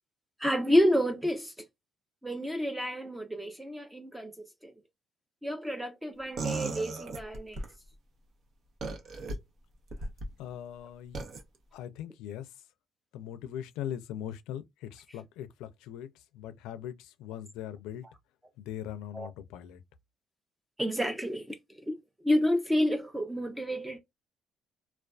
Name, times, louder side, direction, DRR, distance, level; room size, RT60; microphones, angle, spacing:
voice 1, 0.4-1.5 2.2-4.7 5.4-7.6 15.1-15.2 19.1-19.3 20.8-22.0 22.2-24.0, equal, 10° right, 0.5 m, -29 dB
sound 1, 6.4-7.7 8.8-9.3 9.9-10.3 11.1-11.4, right 3 dB, 60° right, 0.8 m, -35 dB
voice 2, 10.4-11.2 11.7-12.5 13.1-16.1 16.3-18.0 18.6-19.8, left 10 dB, 90° left, 0.4 m, -40 dB
2.4 x 2.2 x 2.3 m
cardioid pair, 100°, 0 cm